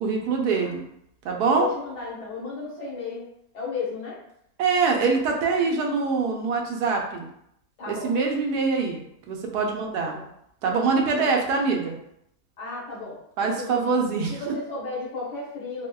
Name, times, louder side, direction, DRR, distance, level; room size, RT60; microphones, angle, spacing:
voice 1, 0.0-0.8 1.2-1.7 4.6-7.3 7.9-9.0 9.3-10.2 10.6-12.0 13.4-14.5, right 4 dB, 85° right, 1 dB, 1.2 m, -24 dB
voice 2, 1.5-3.3 3.5-4.2 7.8-8.1 10.0-10.3 11.1-11.4 12.6-13.2 13.6-13.8 14.3-15.9, left 4 dB, 90° left, -5 dB, 1.6 m, -34 dB
4.2 x 2.1 x 2.2 m, 0.74 s
omnidirectional pair, 1.7 m